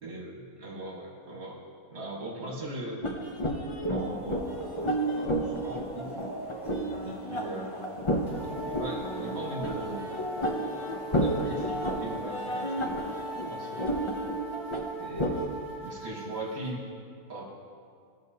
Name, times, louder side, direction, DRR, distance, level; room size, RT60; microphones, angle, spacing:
voice 1, 0.0-1.6 1.9-3.0 3.9-6.2 7.0-7.8 8.4-10.1 11.1-13.0 13.5-13.9 15.0-15.5 15.8-16.9 17.3-17.5, right 1 dB, 50° right, -3 dB, 1.7 m, -39 dB
sound 1, 3.0-15.5, right 1 dB, 45° left, 0.4 m, -32 dB
Boiling, 3.8-14.8, equal, ahead, 1.6 m, -46 dB
sound 2, 8.3-16.8, right 1 dB, 30° right, 1.6 m, -40 dB
16.0 x 6.1 x 2.8 m, 2.2 s
omnidirectional pair, 1.5 m